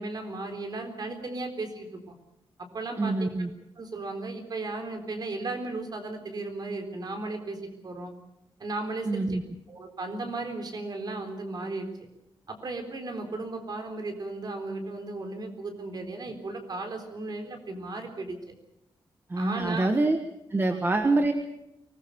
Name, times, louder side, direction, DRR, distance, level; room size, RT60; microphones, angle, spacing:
voice 1, 0.0-2.2 2.7-3.3 3.8-7.6 7.8-8.1 8.6-9.3 9.7-11.9 12.5-18.5 19.4-19.9 20.6-20.8, right 2 dB, 45° right, 5 dB, 4.0 m, -35 dB
voice 2, 3.0-3.5 9.0-9.4 19.3-20.2 20.5-21.3, right 2 dB, 25° right, 6 dB, 1.3 m, -25 dB
24.0 x 20.0 x 6.9 m, 0.88 s
wide cardioid pair, 170°, 9 cm